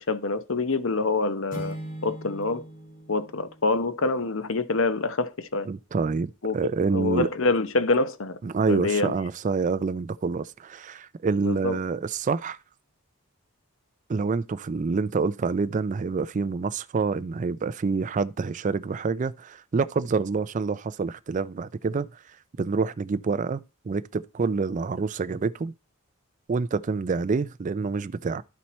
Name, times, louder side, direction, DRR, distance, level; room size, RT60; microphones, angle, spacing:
voice 1, 0.0-1.7 2.0-2.6 3.1-5.7 6.4-6.6 6.9-8.4 8.7-9.1 11.4-11.7, left 3 dB, 65° left, 0.8 m, -26 dB
sound 1, 1.5-4.3, right 1 dB, 40° left, 2.2 m, -40 dB
voice 2, 5.7-7.3 8.4-12.6 14.1-22.1 22.6-25.7 26.5-28.4, right 4 dB, 35° right, 0.4 m, -27 dB
12.5 x 4.4 x 4.2 m
head